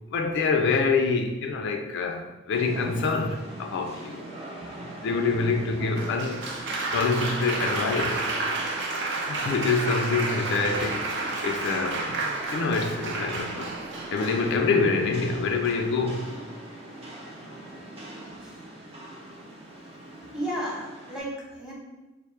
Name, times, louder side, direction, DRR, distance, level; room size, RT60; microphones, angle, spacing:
voice 1, 0.1-4.2 5.0-6.5 6.9-8.3 9.3-11.1 11.4-12.1 12.5-13.8 14.1-16.3, left 4 dB, 65° left, 0.3 m, -26 dB
Rain, 2.5-21.2, right 1 dB, 30° right, 0.7 m, -41 dB
Applause, 6.0-14.8 15.6-16.0, right 3 dB, 60° right, 0.6 m, -31 dB
voice 2, 20.3-21.7, right 1 dB, 5° right, 0.9 m, -33 dB
4.3 x 2.0 x 3.1 m
head